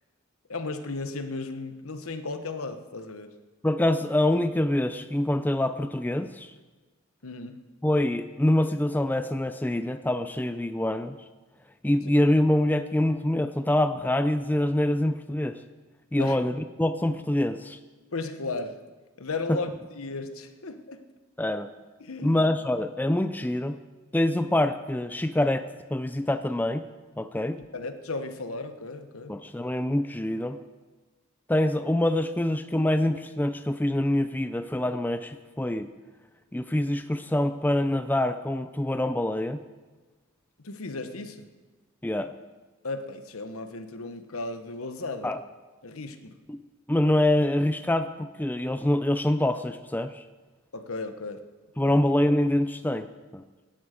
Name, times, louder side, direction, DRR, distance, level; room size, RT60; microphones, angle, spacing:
voice 1, 0.5-3.3 7.2-7.6 16.2-16.4 18.1-18.8 19.2-21.1 22.0-22.4 27.7-29.4 40.6-41.5 42.8-45.3 45.8-46.3 50.7-51.4 51.8-52.0, left 3 dB, 75° left, 9 dB, 1.1 m, -35 dB
voice 2, 3.6-6.5 7.8-11.2 11.8-15.6 16.1-17.8 19.5-19.6 21.4-21.7 22.2-23.7 24.1-26.9 27.2-27.6 29.3-30.6 31.5-35.9 36.5-39.6 42.0-42.3 45.2-45.4 46.5-46.6 46.9-50.2 51.8-53.1 53.3-53.4, left 1 dB, 10° left, 10 dB, 0.4 m, -25 dB
17.5 x 11.5 x 5.1 m, 1.3 s
head